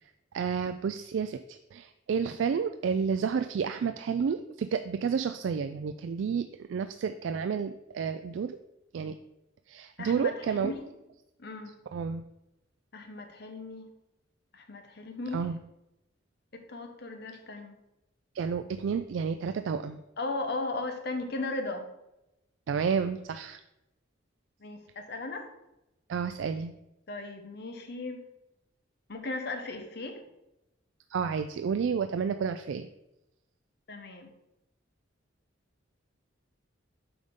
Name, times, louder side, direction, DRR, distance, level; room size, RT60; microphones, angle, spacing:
voice 1, 0.0-8.6 8.9-9.2 9.7-10.7 11.9-12.2 15.3-15.6 18.3-20.0 22.7-23.6 26.1-26.7 31.1-32.9, right 6 dB, 75° right, 9 dB, 0.3 m, -31 dB
voice 2, 10.0-10.8 11.4-11.7 12.9-13.9 14.5-15.5 16.5-17.8 20.2-21.9 24.6-25.5 27.1-28.3 29.1-30.2 33.9-34.3, left 2 dB, 60° left, 6 dB, 0.9 m, -37 dB
7.9 x 5.0 x 3.7 m, 0.92 s
head